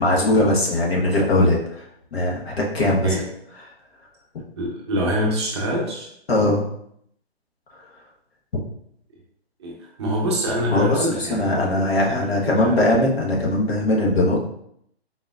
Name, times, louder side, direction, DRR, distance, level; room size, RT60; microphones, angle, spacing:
voice 1, 0.0-1.8 2.1-3.1 6.3-6.6 8.5-8.6 10.7-14.4, left 1 dB, 70° left, -3 dB, 1.3 m, -20 dB
voice 2, 4.6-6.1 9.6-12.8, equal, 25° right, -2 dB, 0.7 m, -26 dB
4.1 x 3.7 x 2.4 m, 0.72 s
hypercardioid pair, 150°, 32 cm